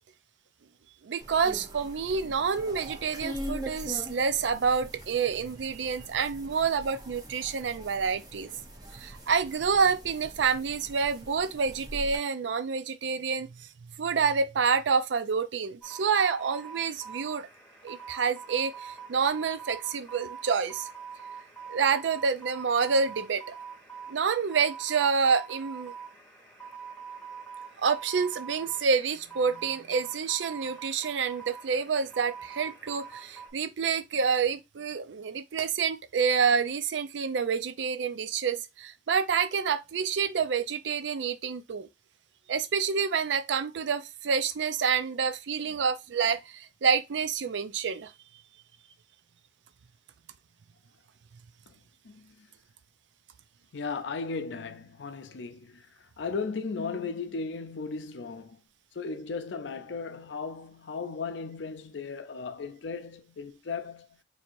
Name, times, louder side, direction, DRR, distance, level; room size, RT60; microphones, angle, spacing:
voice 1, 1.0-8.5 8.9-13.7 14.0-17.5 17.8-20.9 21.7-23.5 24.1-25.9 27.8-41.9 42.5-48.1, right 6 dB, 85° right, 0.4 m, -28 dB
sound 1, 1.2-12.2, equal, 20° right, 0.7 m, -42 dB
sound 2, 15.8-33.5, right 6 dB, 5° left, 1.4 m, -44 dB
voice 2, 53.7-55.9 56.2-58.6 59.0-64.1, left 4 dB, 80° left, 0.5 m, -36 dB
4.5 x 2.8 x 2.6 m
head